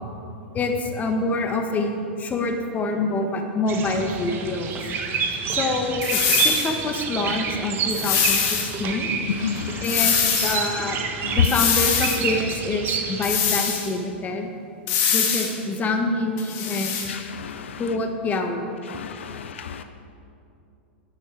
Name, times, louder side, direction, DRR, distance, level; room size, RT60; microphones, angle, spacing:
voice 1, 0.5-4.9 5.5-9.1 9.8-11.0 11.3-14.5 15.1-17.0 17.8-18.6, left 2 dB, 25° left, 4 dB, 1.5 m, -26 dB
sound 1, 3.7-13.3, right 5 dB, 35° right, 1.4 m, -28 dB
sound 2, 6.0-6.7 7.9-8.7 9.8-10.6 11.4-12.2 13.2-13.9 14.9-15.5 16.4-17.1, left 7 dB, 50° left, 2.2 m, -23 dB
voice 2, 9.4-9.9 11.2-11.4 17.1-17.8 18.9-19.8, left 9 dB, 80° left, 9 dB, 0.6 m, -28 dB
12.0 x 6.9 x 6.5 m, 2.6 s
hypercardioid pair, 110°, 6 cm